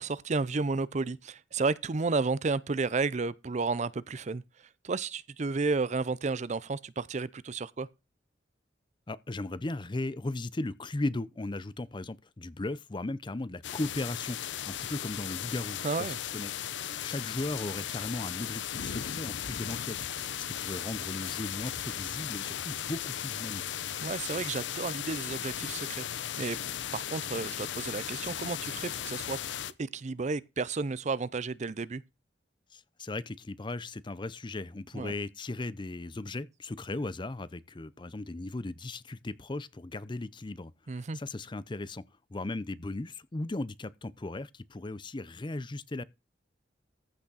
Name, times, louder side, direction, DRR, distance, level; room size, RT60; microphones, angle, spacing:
voice 1, 0.0-7.9 15.8-16.2 24.0-26.6 26.9-29.4 29.8-32.0 34.9-35.1 40.9-41.2, right 4 dB, 40° right, 0.5 m, -32 dB
voice 2, 9.1-16.5 17.0-23.8 32.7-42.0 42.3-46.0, left 2 dB, 25° left, 0.6 m, -37 dB
sound 1, 13.6-29.7, left 10 dB, 85° left, 0.7 m, -36 dB
14.5 x 6.2 x 4.0 m
head